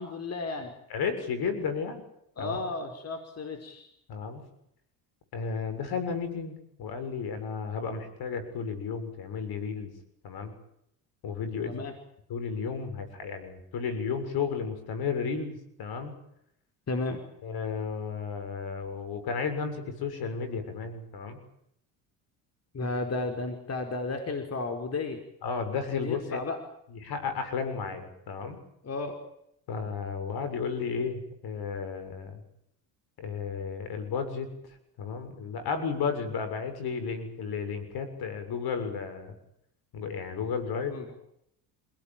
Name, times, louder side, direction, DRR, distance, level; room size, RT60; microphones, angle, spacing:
voice 1, 0.0-0.7 2.4-3.9 11.6-11.9 16.9-17.2 22.7-25.2 25.9-26.6 28.8-29.2 40.9-41.1, left 3 dB, 35° left, 4 dB, 5.0 m, -33 dB
voice 2, 0.9-2.0 2.4-2.6 4.1-4.4 5.3-6.5 6.8-9.9 10.2-10.5 11.2-11.8 12.3-16.1 17.4-21.4 25.4-26.4 27.0-28.6 29.7-32.4 33.2-34.5 35.0-39.3 39.9-41.1, left 5 dB, 55° left, 10 dB, 6.9 m, -33 dB
27.5 x 18.0 x 9.1 m, 0.75 s
hypercardioid pair, 75°, 44 cm